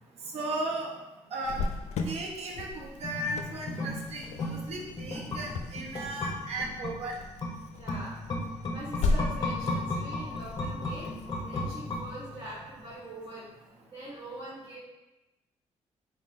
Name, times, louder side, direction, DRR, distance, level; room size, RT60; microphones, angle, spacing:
voice 1, 0.2-1.0 1.3-1.6 2.1-7.1, right 2 dB, 70° right, 0 dB, 0.7 m, -35 dB
Cricket, 1.4-12.9, left 3 dB, 75° left, 0.4 m, -37 dB
sound 1, 3.0-12.6 12.9-13.0, left 2 dB, 35° left, 0.6 m, -35 dB
voice 2, 4.3-5.7 6.0-6.5 7.7-8.2 8.7-11.1 11.4-13.5 13.9-14.8, right 1 dB, 35° right, -8 dB, 1.3 m, -44 dB
3.6 x 2.1 x 3.9 m, 1.0 s
cardioid pair, 115°, 11 cm